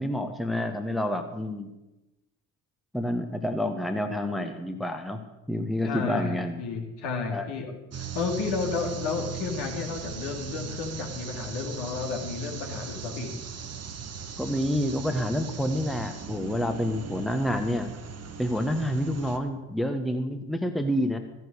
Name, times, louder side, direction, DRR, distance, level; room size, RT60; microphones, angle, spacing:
voice 1, 0.0-1.7 2.9-5.2 5.5-6.6 7.3-7.5 14.4-17.9 18.4-21.2, equal, ahead, 7 dB, 1.3 m, -28 dB
voice 2, 5.8-7.7 8.0-13.3, left 4 dB, 60° left, 2 dB, 2.5 m, -32 dB
sound 1, 7.9-19.4, right 7 dB, 30° right, 1.4 m, -38 dB
14.5 x 9.4 x 6.6 m, 1.0 s
figure-of-eight pair, 45°, 47 cm